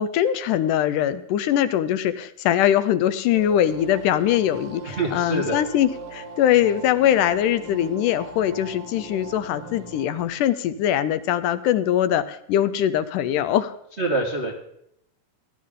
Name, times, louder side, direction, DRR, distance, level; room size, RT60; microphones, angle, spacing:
voice 1, 0.0-13.7, left 11 dB, 80° left, 13 dB, 2.1 m, -22 dB
sound 1, 3.3-10.2, right 3 dB, 80° right, 4.6 m, -40 dB
voice 2, 5.0-5.6 14.0-14.5, right 2 dB, 50° right, -1 dB, 0.7 m, -25 dB
18.0 x 11.5 x 3.7 m, 0.74 s
omnidirectional pair, 3.8 m